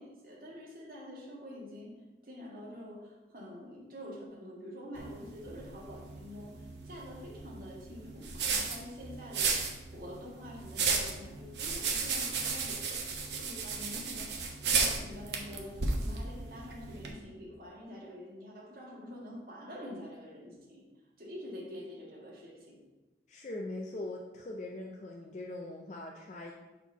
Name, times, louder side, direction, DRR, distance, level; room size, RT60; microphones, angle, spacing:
voice 1, 0.0-1.9 2.2-6.5 6.8-14.3 14.6-20.8 21.2-22.8, left 1 dB, 55° right, -4 dB, 1.7 m, -46 dB
sound 1, 5.0-17.1, right 4 dB, 85° right, 0.9 m, -34 dB
voice 2, 23.3-26.5, left 2 dB, 40° left, -1 dB, 0.4 m, -41 dB
4.3 x 4.2 x 5.6 m, 1.1 s
head